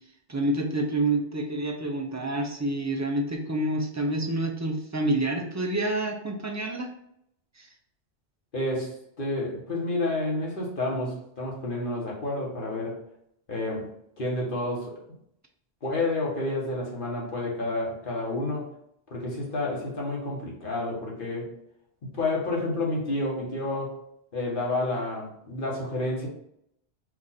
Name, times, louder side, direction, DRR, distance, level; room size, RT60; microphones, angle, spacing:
voice 1, 0.3-6.9 7.6-7.7, right 2 dB, 25° right, 1 dB, 0.4 m, -28 dB
voice 2, 8.5-13.0 13.5-13.9 14.2-15.0 15.8-18.7 19.1-21.5 22.1-24.0 24.3-26.3, left 2 dB, 50° left, -2 dB, 1.3 m, -30 dB
4.7 x 2.5 x 4.1 m, 0.74 s
omnidirectional pair, 1.1 m